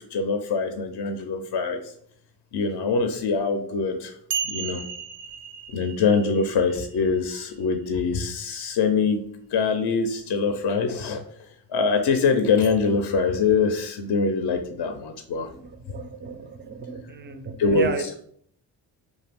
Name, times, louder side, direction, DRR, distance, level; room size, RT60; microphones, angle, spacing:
voice 1, 0.1-1.8 2.5-4.1 4.5-4.8 5.7-9.2 9.5-11.2 11.7-15.5 17.6-18.2, left 4 dB, 50° left, 6 dB, 0.5 m, -23 dB
sound 1, 3.4-3.5 4.3-7.9 12.6-12.8, right 7 dB, 80° right, 0.6 m, -35 dB
voice 2, 15.5-18.2, right 5 dB, 25° right, 8 dB, 0.3 m, -35 dB
2.5 x 2.3 x 3.3 m, 0.64 s
supercardioid pair, 60°, 50 cm